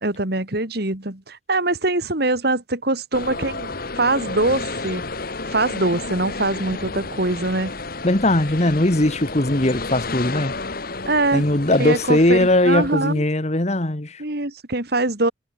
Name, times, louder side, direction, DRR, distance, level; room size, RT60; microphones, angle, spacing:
voice 1, 0.0-5.0 5.5-7.7 11.1-11.4 11.8-12.4 12.6-13.2 14.2-15.3, right 2 dB, 60° right, 2.9 m, -23 dB
sound 1, 3.1-13.2, left 3 dB, 50° left, 2.0 m, -31 dB
voice 2, 8.0-10.5 11.3-14.2, left 1 dB, 35° left, 1.6 m, -19 dB
head